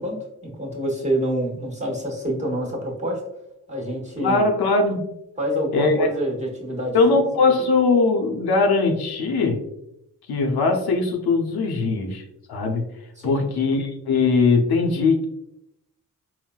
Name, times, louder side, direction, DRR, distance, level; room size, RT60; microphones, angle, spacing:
voice 1, 0.0-3.2 3.7-4.4 5.4-7.2 7.4-7.7 13.2-13.5, equal, 20° right, -2 dB, 1.1 m, -27 dB
voice 2, 4.2-5.0 5.7-6.1 6.9-9.6 10.3-12.2 12.5-12.9 13.2-15.3, left 3 dB, 85° left, 3 dB, 0.6 m, -20 dB
3.9 x 2.1 x 2.2 m, 0.82 s
cardioid pair, 50°, 37 cm